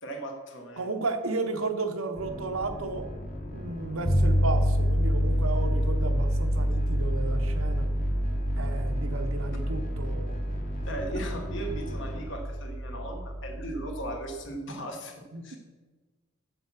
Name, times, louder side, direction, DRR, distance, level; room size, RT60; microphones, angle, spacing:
voice 1, 0.0-0.9 10.8-15.1 15.4-15.6, right 1 dB, 60° left, 3 dB, 1.5 m, -37 dB
voice 2, 0.8-3.1 3.5-7.9 8.6-10.4 15.3-15.4, right 3 dB, 85° right, 6 dB, 1.0 m, -33 dB
sound 1, 2.1-12.3, left 1 dB, 40° left, 1.4 m, -39 dB
sound 2, 4.1-14.2, equal, 25° left, 0.8 m, -27 dB
7.1 x 7.1 x 5.8 m, 1.3 s
head